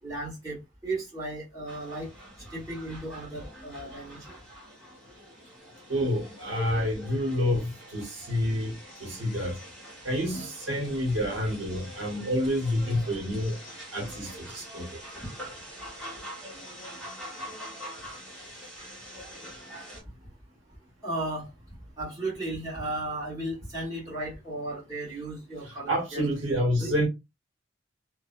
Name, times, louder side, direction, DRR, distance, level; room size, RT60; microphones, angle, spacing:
voice 1, 0.0-2.1 2.5-4.4 21.0-21.5 22.0-26.2 26.8-26.9, right 2 dB, 20° right, 1.5 m, -35 dB
sound 1, 1.7-20.0, equal, 5° left, 1.2 m, -45 dB
voice 2, 5.9-8.7 9.0-9.6 10.0-13.6 13.9-15.0 25.9-27.1, equal, 70° right, 1.1 m, -28 dB
2.7 x 2.2 x 2.5 m
head